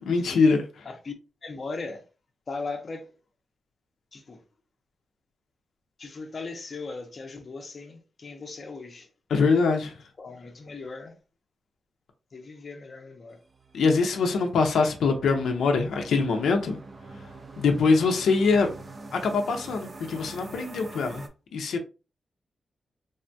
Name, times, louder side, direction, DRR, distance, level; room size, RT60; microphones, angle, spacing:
voice 1, 0.0-0.6 9.3-10.0 13.7-16.8 17.6-18.7 19.1-21.3 21.5-21.8, left 4 dB, 90° left, 0.5 m, -23 dB
voice 2, 1.4-2.1 2.5-3.1 4.1-4.4 6.0-9.1 10.2-11.2 12.3-13.4, left 3 dB, 35° left, 0.5 m, -38 dB
sound 1, 13.4-21.3, right 3 dB, 30° right, 0.4 m, -45 dB
3.4 x 2.2 x 2.6 m
wide cardioid pair, 150°, 0 cm